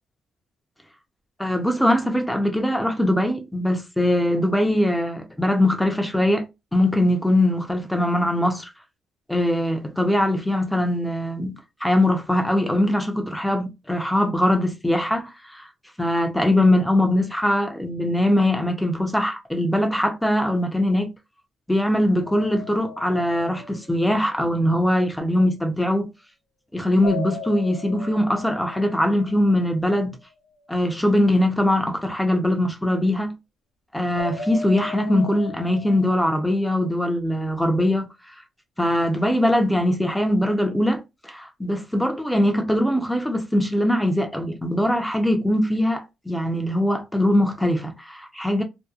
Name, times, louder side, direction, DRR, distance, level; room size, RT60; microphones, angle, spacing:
voice 1, 1.4-6.5 6.7-8.7 9.3-15.7 16.0-21.1 21.7-26.1 26.7-30.2 30.7-33.3 33.9-38.1 38.8-48.6, left 1 dB, 5° left, 0.6 m, -21 dB
sound 1, 22.3-24.3 27.0-29.9 34.1-36.4, left 4 dB, 75° left, 0.7 m, -37 dB
2.7 x 2.2 x 2.3 m
cardioid pair, 90°, 0 cm